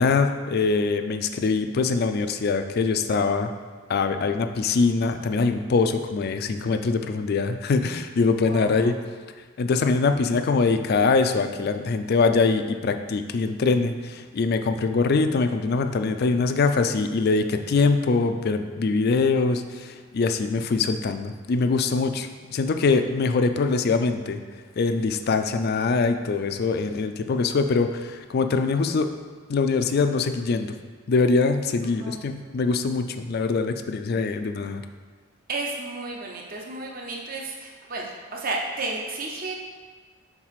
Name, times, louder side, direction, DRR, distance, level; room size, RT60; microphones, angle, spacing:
voice 1, 0.0-3.5 3.9-8.9 9.6-24.4 24.8-29.1 29.5-30.7 31.1-34.8, left 4 dB, 45° left, 7 dB, 0.3 m, -23 dB
voice 2, 8.4-8.9 32.0-32.2 35.5-39.5, right 3 dB, 40° right, 0 dB, 0.7 m, -32 dB
4.6 x 3.9 x 5.7 m, 1.5 s
head